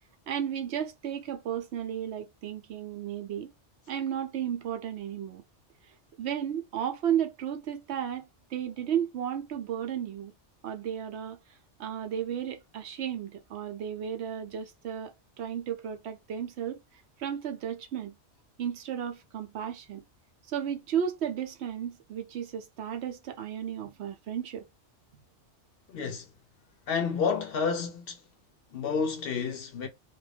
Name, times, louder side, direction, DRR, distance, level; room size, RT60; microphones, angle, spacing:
voice 1, 0.3-3.5 3.9-5.4 6.2-10.3 10.6-11.4 11.8-16.8 17.2-18.1 18.6-20.0 20.5-24.6, right 9 dB, 70° right, 0.8 m, -33 dB
voice 2, 25.9-26.3 26.9-28.2 28.7-29.9, left 5 dB, 65° left, 0.7 m, -30 dB
2.4 x 2.2 x 3.2 m
omnidirectional pair, 1.2 m